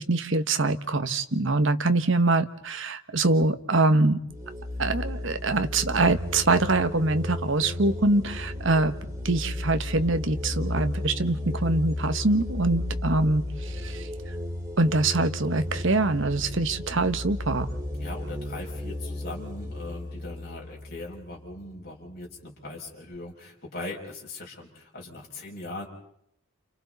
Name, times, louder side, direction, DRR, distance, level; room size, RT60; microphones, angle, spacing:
voice 1, 0.0-4.2 4.8-9.0 9.2-14.1 14.8-17.7, right 2 dB, 60° right, 9 dB, 1.3 m, -24 dB
sound 1, 4.3-21.7, left 1 dB, 15° right, 4.5 m, -34 dB
voice 2, 18.0-25.9, left 2 dB, 45° left, -2 dB, 6.7 m, -40 dB
30.0 x 29.5 x 4.1 m, 0.72 s
head